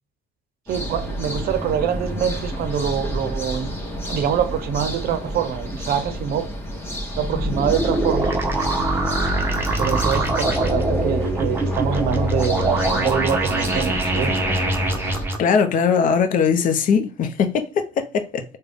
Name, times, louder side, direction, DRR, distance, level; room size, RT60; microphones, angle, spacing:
sound 1, 0.7-15.3, right 1 dB, 15° left, 0.9 m, -30 dB
voice 1, 0.7-3.8 4.0-6.5 7.2-8.3 9.8-14.4, right 8 dB, 65° right, 0.5 m, -25 dB
sound 2, 7.2-15.4, right 1 dB, 15° right, 0.7 m, -23 dB
voice 2, 15.4-18.4, left 6 dB, 50° left, 0.6 m, -20 dB
3.7 x 2.2 x 3.4 m
cardioid pair, 110°, 17 cm